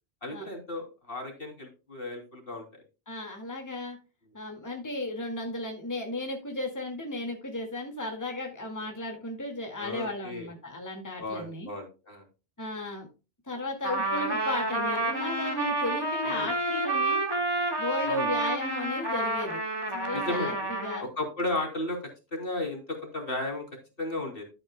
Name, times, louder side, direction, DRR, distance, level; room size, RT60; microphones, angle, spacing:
voice 1, 0.2-2.8 9.8-10.5 11.2-12.2 16.2-16.5 18.0-18.3 20.1-20.7 21.0-22.0 22.3-23.6 24.0-24.4, left 2 dB, 55° left, 2 dB, 3.3 m, -34 dB
voice 2, 3.1-4.0 4.3-11.7 12.6-13.1 13.5-17.2 17.8-19.6 19.9-20.5 20.8-21.1, left 1 dB, 15° left, 2 dB, 2.0 m, -35 dB
Trumpet, 13.8-21.1, right 2 dB, 20° right, 2.0 m, -29 dB
12.5 x 8.8 x 2.2 m, 0.30 s
omnidirectional pair, 1.2 m